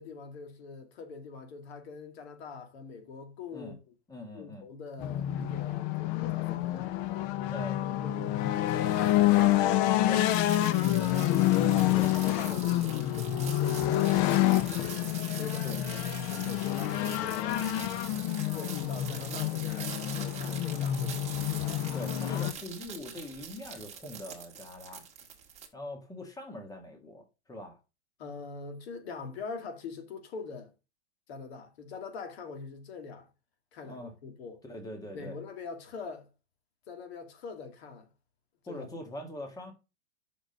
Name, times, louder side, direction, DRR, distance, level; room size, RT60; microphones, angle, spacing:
voice 1, 0.0-3.8 4.3-7.3 8.0-9.8 10.4-11.6 11.9-14.7 15.3-17.7 18.5-21.4 28.2-30.7 31.3-33.3 33.7-34.6 35.1-36.3 36.9-38.1 38.7-38.9, left 4 dB, 65° left, 2.3 m, -43 dB
voice 2, 4.1-4.7 7.5-8.0 10.1-10.3 11.9-12.1 15.6-15.8 21.9-25.1 25.7-27.8 33.8-34.1 34.6-35.4 38.7-39.7, left 1 dB, 10° left, 1.8 m, -43 dB
sound 1, 5.0-22.5, left 13 dB, 35° left, 0.7 m, -28 dB
sound 2, 10.3-25.7, right 7 dB, 20° right, 1.8 m, -44 dB
6.2 x 5.0 x 6.4 m
hypercardioid pair, 140°, 34 cm